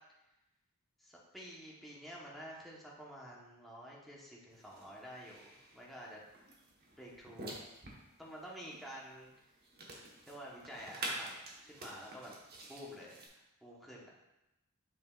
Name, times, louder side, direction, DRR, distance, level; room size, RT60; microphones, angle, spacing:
voice 1, 1.0-6.2 6.9-7.5 8.2-9.3 10.3-12.3 12.7-13.1 13.6-14.1, equal, ahead, -5 dB, 1.1 m, -49 dB
sound 1, 4.5-13.3, right 2 dB, 45° right, 1.2 m, -48 dB
7.2 x 6.0 x 2.4 m, 0.93 s
head